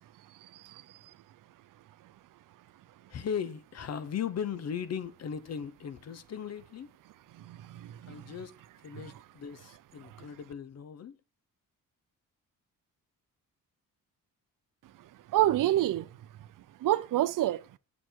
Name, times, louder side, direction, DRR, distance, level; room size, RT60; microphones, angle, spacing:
voice 1, 3.1-6.9 8.1-8.5 8.8-11.2, left 7 dB, 50° left, 0.8 m, -37 dB
voice 2, 7.5-8.2 15.3-16.1 16.8-17.6, right 14 dB, 65° right, 0.6 m, -27 dB
7.5 x 6.7 x 4.5 m
cardioid pair, 125°, 35 cm